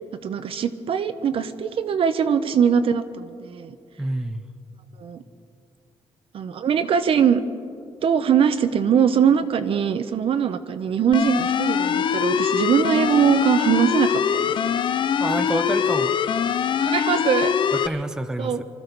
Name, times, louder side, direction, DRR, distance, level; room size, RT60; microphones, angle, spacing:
voice 1, 0.2-3.7 5.0-5.2 6.3-7.4 8.0-14.7 16.8-17.5 18.4-18.6, right 7 dB, 55° right, 11 dB, 0.8 m, -21 dB
voice 2, 4.0-4.4 15.2-16.1 17.7-18.6, right 1 dB, 5° right, 9 dB, 0.6 m, -28 dB
sound 1, 11.1-17.9, left 8 dB, 45° left, 0.4 m, -23 dB
25.0 x 13.5 x 4.0 m, 2.4 s
cardioid pair, 130°, 11 cm